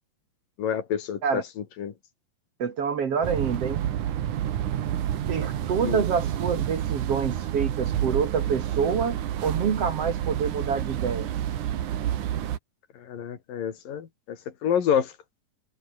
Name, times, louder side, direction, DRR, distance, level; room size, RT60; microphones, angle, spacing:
voice 1, 0.6-1.4 1.8-1.9 5.8-6.0 13.0-14.4 14.6-15.1, left 8 dB, 75° left, 4.1 m, -27 dB
voice 2, 2.6-3.8 5.3-9.2 9.4-11.3, right 6 dB, 50° right, 2.4 m, -27 dB
sound 1, 3.2-12.6, right 11 dB, 65° right, 2.9 m, -29 dB
omnidirectional pair, 4.0 m